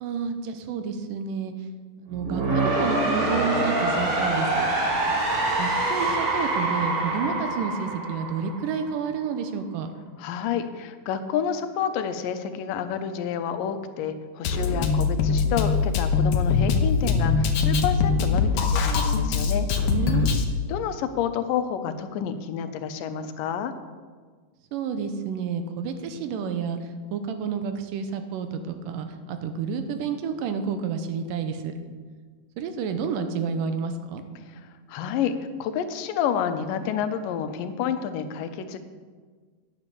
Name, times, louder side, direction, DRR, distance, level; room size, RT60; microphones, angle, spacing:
voice 1, 0.0-1.5 2.0-4.7 5.6-9.9 19.9-20.4 24.7-26.8 27.1-31.7 32.6-34.2, right 6 dB, 90° right, 8 dB, 2.5 m, -30 dB
sound 1, 2.1-9.0, right 2 dB, 60° right, 4.2 m, -25 dB
voice 2, 10.2-19.7 20.7-23.7 34.5-35.3 35.6-38.8, left 8 dB, 90° left, 9 dB, 2.4 m, -29 dB
Drum kit, 14.4-20.4, left 5 dB, 75° left, 1.3 m, -22 dB
9.7 x 7.3 x 6.9 m, 1.5 s
omnidirectional pair, 3.8 m